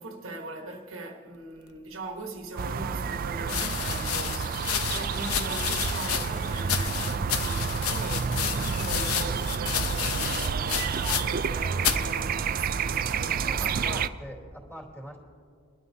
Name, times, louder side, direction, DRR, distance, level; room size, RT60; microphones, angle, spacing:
voice 1, 0.0-14.0, right 2 dB, 65° right, 1.2 m, -40 dB
sound 1, 2.4-2.5 3.4-11.5 11.8-12.1 12.9-13.3, left 9 dB, 85° left, 0.7 m, -31 dB
sound 2, 2.6-14.1, right 6 dB, 40° right, 0.3 m, -29 dB
voice 2, 13.4-15.2, equal, 10° left, 3.2 m, -42 dB
23.5 x 12.5 x 2.8 m
head